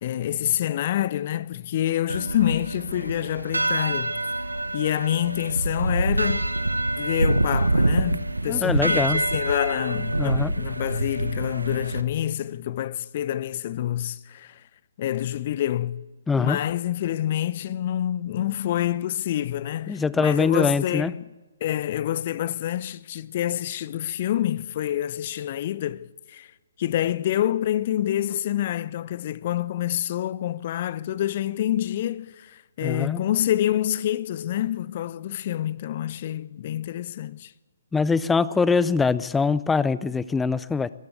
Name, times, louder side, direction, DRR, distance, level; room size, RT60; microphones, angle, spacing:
voice 1, 0.0-4.1 4.7-6.4 7.0-14.6 15.0-15.9 16.4-21.3 21.6-26.5 26.8-37.5, left 12 dB, 40° left, 0.8 m, -27 dB
sound 1, 2.1-12.0, right 2 dB, 85° right, 1.2 m, -26 dB
voice 2, 8.4-9.2 10.2-10.5 16.3-16.6 19.9-21.1 32.8-33.2 37.9-40.9, left 4 dB, 5° left, 0.5 m, -23 dB
23.0 x 14.0 x 8.1 m
figure-of-eight pair, 130°, 0 cm